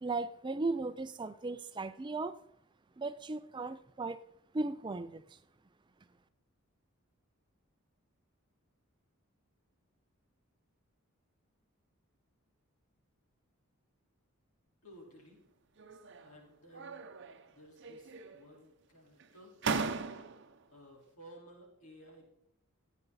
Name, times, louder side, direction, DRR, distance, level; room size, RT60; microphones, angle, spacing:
voice 1, 0.0-2.4 3.0-4.2 4.5-5.4, right 3 dB, 20° right, 13 dB, 0.3 m, -36 dB
voice 2, 14.8-15.4 16.2-17.1 17.5-19.5 20.7-22.3, equal, 80° left, -2 dB, 4.5 m, -56 dB
sound 1, 15.8-16.4 16.7-17.5 17.8-18.6 19.2-19.3 19.6-20.6, right 4 dB, 50° right, 0.7 m, -38 dB
14.5 x 9.1 x 4.1 m, 0.76 s
head